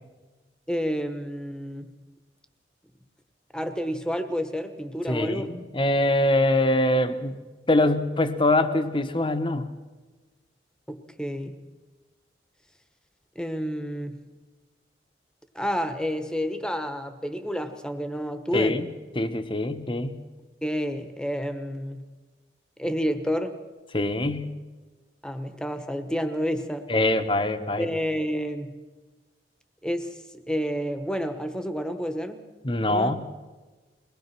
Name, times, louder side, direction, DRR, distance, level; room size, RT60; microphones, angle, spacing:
voice 1, 0.7-1.9 3.5-5.6 10.9-11.6 13.3-14.2 15.5-18.8 20.6-22.0 22.8-23.5 25.2-26.9 27.8-28.8 29.8-32.4 32.9-33.1, equal, 5° left, 8 dB, 1.3 m, -30 dB
voice 2, 5.1-7.4 7.7-9.7 18.5-18.9 19.1-20.2 23.9-24.5 26.9-27.9 32.6-33.2, left 1 dB, 30° left, 9 dB, 1.1 m, -23 dB
22.5 x 20.0 x 6.0 m, 1.3 s
head